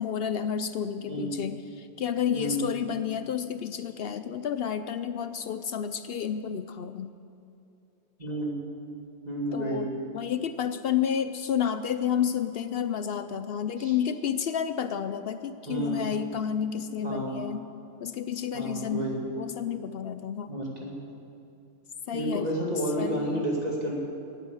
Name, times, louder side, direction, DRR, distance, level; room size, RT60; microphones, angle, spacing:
voice 1, 0.0-7.1 9.5-17.7 18.0-19.1 19.4-20.6 22.1-23.5, left 8 dB, 65° left, 11 dB, 0.7 m, -30 dB
voice 2, 1.1-1.4 2.3-2.7 8.2-8.6 9.2-9.9 13.8-13.9 15.7-16.1 17.0-17.4 18.5-19.2 20.5-20.9 22.1-24.0, right 1 dB, 35° right, -2 dB, 2.3 m, -31 dB
18.5 x 9.0 x 6.3 m, 2.7 s
omnidirectional pair, 1.3 m